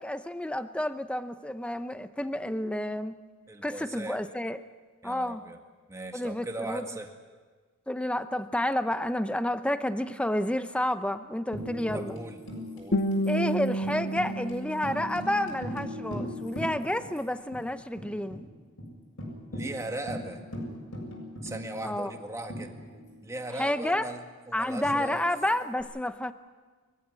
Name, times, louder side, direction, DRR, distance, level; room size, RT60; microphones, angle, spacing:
voice 1, 0.0-3.1 3.6-4.6 5.0-5.4 6.1-6.9 7.9-12.1 13.3-18.4 21.8-22.1 23.6-24.1 24.5-26.3, left 1 dB, 5° left, 11 dB, 0.7 m, -30 dB
voice 2, 3.5-4.2 5.0-5.6 5.9-7.1 11.9-12.4 12.8-13.1 19.5-20.4 21.4-22.7 23.2-25.3, right 2 dB, 15° right, 4 dB, 2.0 m, -38 dB
Tambourine, 11.5-17.2 17.5-17.6 18.0-18.4 18.8-18.9 19.2-23.3 24.8-25.8, equal, 70° left, 7.3 m, -40 dB
Guitar, 12.9-15.9, right 1 dB, 50° left, 1.5 m, -30 dB
23.5 x 15.5 x 9.7 m, 1.5 s
head